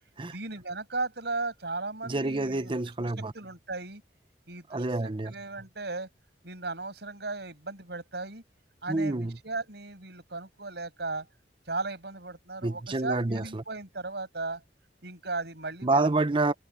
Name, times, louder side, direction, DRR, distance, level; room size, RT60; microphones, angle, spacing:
voice 1, 0.3-2.7 3.3-4.0 4.5-6.1 6.4-8.4 8.8-11.3 11.7-14.6 15.0-16.1, right 3 dB, 70° right, 6.9 m, -36 dB
voice 2, 2.0-3.3 4.7-5.3 8.9-9.4 12.6-13.6 15.8-16.5, right 2 dB, 30° right, 0.7 m, -28 dB
head